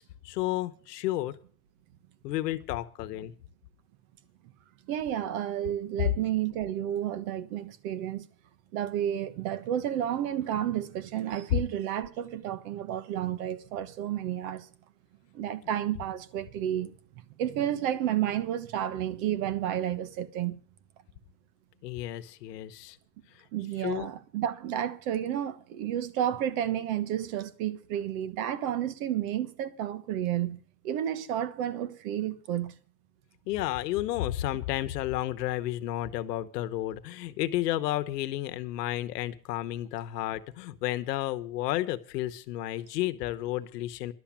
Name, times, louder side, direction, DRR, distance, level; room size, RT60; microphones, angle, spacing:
voice 1, 0.0-1.4 2.2-3.3 6.0-6.1 11.5-11.6 21.8-23.0 23.8-24.1 33.5-44.1, left 14 dB, 85° left, 1.1 m, -31 dB
voice 2, 4.9-8.3 8.7-14.7 15.3-16.9 17.4-20.6 23.5-32.8, right 11 dB, 60° right, 1.3 m, -31 dB
11.5 x 7.3 x 8.7 m
supercardioid pair, 145°, 47 cm